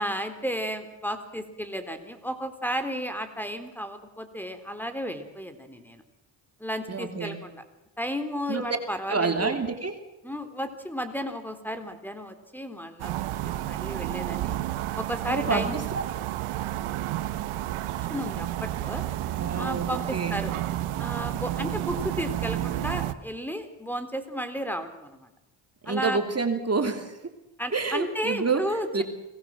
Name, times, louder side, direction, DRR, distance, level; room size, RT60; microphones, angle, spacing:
voice 1, 0.0-6.0 6.6-7.6 8.0-9.5 10.2-13.2 13.5-14.6 15.0-15.8 18.0-19.0 19.6-20.5 21.0-25.3 25.9-26.2 27.6-29.0, equal, 5° left, 9 dB, 3.8 m, -33 dB
voice 2, 6.9-7.4 8.5-8.7 9.1-9.9 15.3-16.0 19.2-20.4 25.8-27.2 27.7-29.0, right 4 dB, 30° right, 5 dB, 3.1 m, -28 dB
sound 1, 13.0-23.1, right 14 dB, 85° right, 1.4 m, -31 dB
29.5 x 19.5 x 7.6 m, 0.96 s
supercardioid pair, 65°, 49 cm